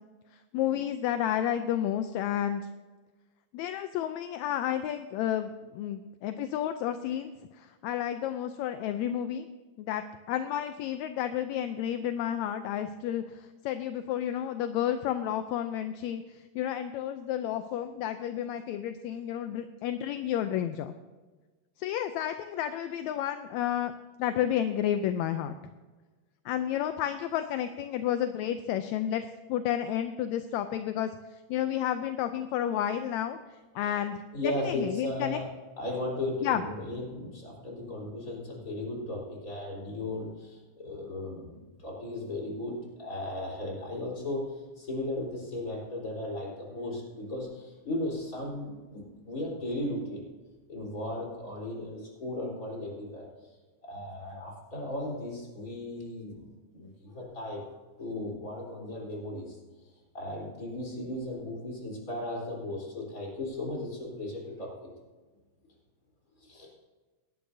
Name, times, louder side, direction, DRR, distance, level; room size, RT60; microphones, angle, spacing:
voice 1, 0.3-2.7 3.5-9.5 9.8-20.9 21.8-23.9 24.2-25.6 26.5-29.2 29.5-31.1 31.5-35.4 36.4-36.6, left 10 dB, 80° left, 9 dB, 1.8 m, -31 dB
voice 2, 34.3-35.5 35.8-50.2 50.7-53.3 53.8-57.7 58.0-59.6 60.1-64.7 66.4-66.7, left 1 dB, 25° left, -2 dB, 4.2 m, -36 dB
18.0 x 12.5 x 2.7 m, 1.3 s
omnidirectional pair, 3.4 m